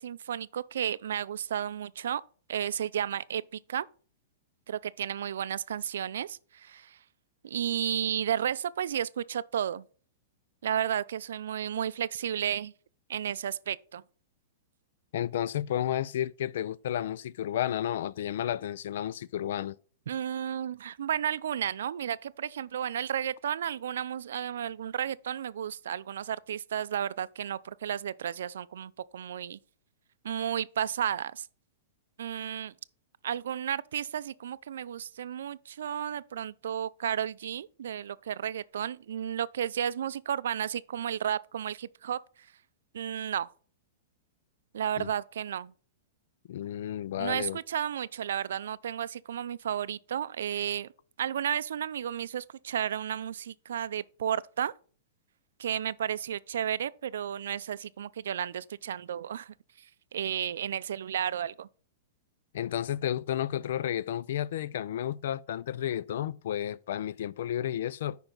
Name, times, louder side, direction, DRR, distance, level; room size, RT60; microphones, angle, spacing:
voice 1, 0.0-2.2 2.5-3.9 4.7-7.0 7.4-9.8 10.6-12.7 13.1-14.0 20.1-29.6 30.2-31.5 32.2-32.7 33.2-42.2 42.9-43.5 44.7-45.7 47.2-50.9 51.2-54.7 55.6-59.5 60.1-61.7, right 9 dB, 80° right, 0.4 m, -33 dB
voice 2, 15.1-19.8 45.0-45.1 46.5-47.6 62.5-68.2, left 11 dB, 60° left, 0.3 m, -32 dB
9.0 x 5.3 x 3.9 m
supercardioid pair, 170°, 0 cm